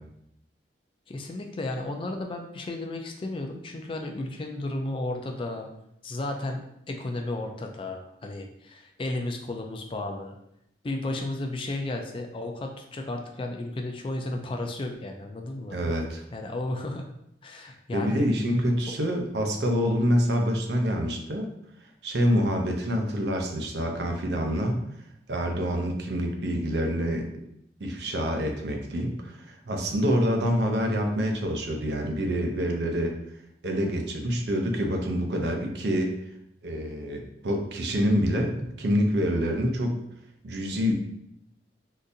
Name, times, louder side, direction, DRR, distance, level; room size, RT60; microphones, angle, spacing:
voice 1, 1.1-5.7 6.0-6.6 6.9-10.4 10.8-15.8 16.3-17.1 17.4-18.3 18.9-19.0, left 2 dB, 30° left, 4 dB, 0.3 m, -33 dB
voice 2, 15.7-16.2 17.9-21.5 22.0-24.8 25.3-27.3 27.8-33.1 33.6-36.1 36.6-40.0 40.4-40.9, equal, 70° right, 3 dB, 0.5 m, -26 dB
3.8 x 2.5 x 2.6 m, 0.78 s
head